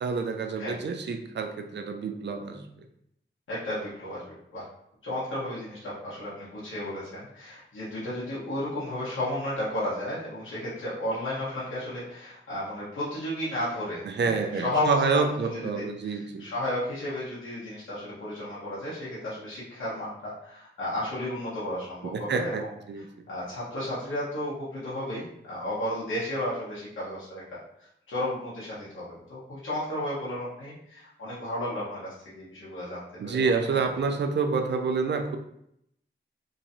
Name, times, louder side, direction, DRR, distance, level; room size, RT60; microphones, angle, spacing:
voice 1, 0.0-2.6 14.1-16.4 22.1-22.6 22.9-23.1 33.2-35.4, right 5 dB, 60° right, 5 dB, 0.5 m, -28 dB
voice 2, 3.5-4.6 5.0-22.7 23.3-27.6 28.1-33.8, left 1 dB, 80° left, -9 dB, 1.1 m, -33 dB
3.0 x 2.6 x 2.6 m, 0.75 s
cardioid pair, 60°, 20 cm